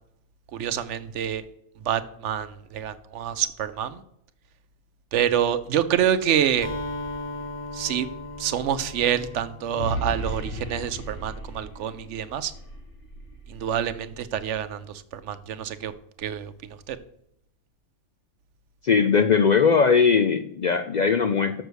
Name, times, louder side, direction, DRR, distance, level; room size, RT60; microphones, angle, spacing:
voice 1, 0.5-1.4 1.9-2.5 2.7-4.0 5.1-6.7 7.7-8.1 8.4-12.5 13.5-14.8 15.1-15.9 16.2-16.5 16.9-17.0, right 9 dB, 75° right, 13 dB, 1.0 m, -26 dB
sound 1, 6.4-14.5, right 1 dB, 75° left, 1.7 m, -38 dB
Acoustic guitar, 6.6-10.5, left 2 dB, 30° left, 1.0 m, -37 dB
voice 2, 18.8-21.6, left 5 dB, 55° left, 8 dB, 0.5 m, -20 dB
6.7 x 6.4 x 6.2 m, 0.75 s
omnidirectional pair, 1.2 m